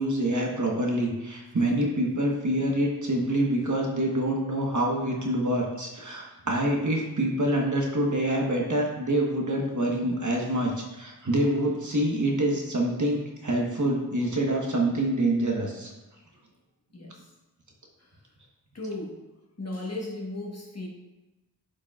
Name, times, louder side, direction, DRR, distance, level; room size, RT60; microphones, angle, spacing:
voice 1, 0.0-15.9, right 1 dB, 50° right, -1 dB, 1.2 m, -26 dB
voice 2, 16.9-17.3 18.0-18.1 18.7-19.2 19.6-20.9, left 2 dB, 40° left, -2 dB, 1.4 m, -37 dB
8.6 x 5.2 x 2.4 m, 1.1 s
wide cardioid pair, 70°, 39 cm